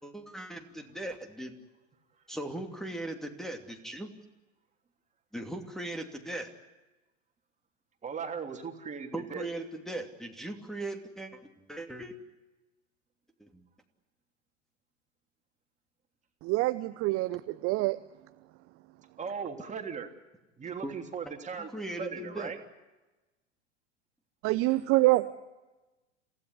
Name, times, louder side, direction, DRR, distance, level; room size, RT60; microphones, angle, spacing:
voice 1, 0.0-1.5 2.3-4.1 5.3-6.5 9.1-12.1 13.4-13.6 20.8-20.9 21.6-22.5, right 1 dB, ahead, 6 dB, 2.8 m, -39 dB
voice 2, 8.0-9.5 19.2-20.1 20.6-21.7 22.0-22.6, right 6 dB, 20° right, 4 dB, 3.2 m, -38 dB
voice 3, 16.4-18.0 24.4-25.3, right 19 dB, 35° right, 12 dB, 0.8 m, -26 dB
28.0 x 16.5 x 9.7 m, 1.1 s
figure-of-eight pair, 85°, 38 cm